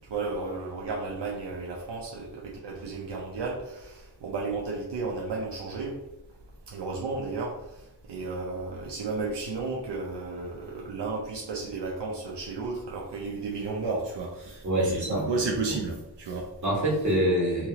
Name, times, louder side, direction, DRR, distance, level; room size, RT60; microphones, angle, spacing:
voice 1, 0.1-6.0 6.7-7.6 8.1-16.5, right 3 dB, 85° right, -1 dB, 0.6 m, -33 dB
voice 2, 14.6-15.7 16.6-17.7, equal, 45° right, -4 dB, 1.4 m, -26 dB
2.9 x 2.8 x 2.8 m, 0.93 s
wide cardioid pair, 60°, 41 cm